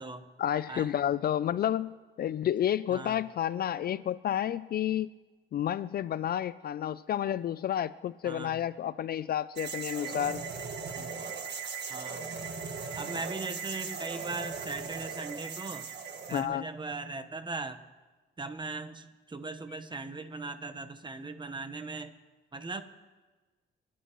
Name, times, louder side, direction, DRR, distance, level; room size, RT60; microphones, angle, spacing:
voice 1, 0.4-5.1 5.5-10.4 16.3-16.7, left 10 dB, 50° left, 17 dB, 0.4 m, -30 dB
voice 2, 8.2-8.6 11.0-11.1 11.9-12.2 13.0-15.9 16.3-17.8 18.4-22.1 22.5-22.8, right 3 dB, 25° right, 10 dB, 1.1 m, -39 dB
sound 1, 9.6-16.4, right 5 dB, 60° right, 1.6 m, -38 dB
27.0 x 11.5 x 3.1 m, 1.3 s
cardioid pair, 90°, 20 cm